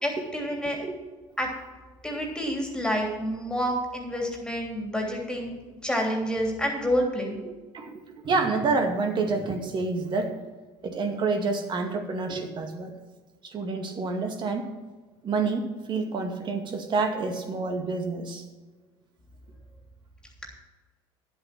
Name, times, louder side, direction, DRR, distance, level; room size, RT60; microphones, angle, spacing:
voice 1, 0.0-0.9 1.4-1.5 2.0-5.5 5.8-7.4 20.4-20.5, equal, 5° left, 1 dB, 3.2 m, -28 dB
voice 2, 7.4-10.4 10.8-12.9 13.4-14.6 15.2-18.4, right 4 dB, 40° right, 5 dB, 2.1 m, -28 dB
10.5 x 8.1 x 6.1 m, 1.3 s
supercardioid pair, 100°, 12 cm